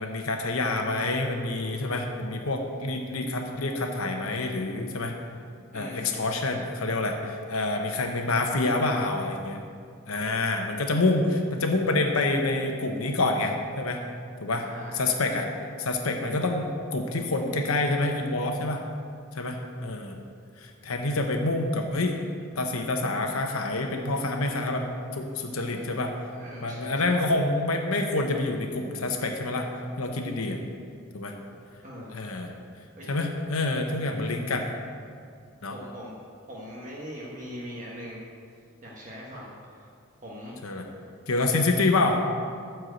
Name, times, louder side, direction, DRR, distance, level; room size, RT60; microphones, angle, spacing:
voice 1, 0.0-5.2 5.7-9.6 10.1-14.0 14.4-14.6 14.9-15.5 15.8-18.8 19.3-20.2 20.6-22.2 22.6-24.9 25.1-26.1 26.6-29.7 30.0-30.6 31.1-31.3 32.1-32.5 33.1-34.7 35.6-35.8 40.6-40.9 41.3-42.2, left 2 dB, 85° left, 3 dB, 0.9 m, -27 dB
voice 2, 5.7-6.2 14.6-15.1 26.2-27.2 31.8-32.3 32.9-33.1 35.7-36.2 36.5-38.2 38.8-39.9 40.2-40.6, equal, 35° right, -5 dB, 1.4 m, -41 dB
12.5 x 4.6 x 8.0 m, 2.3 s
head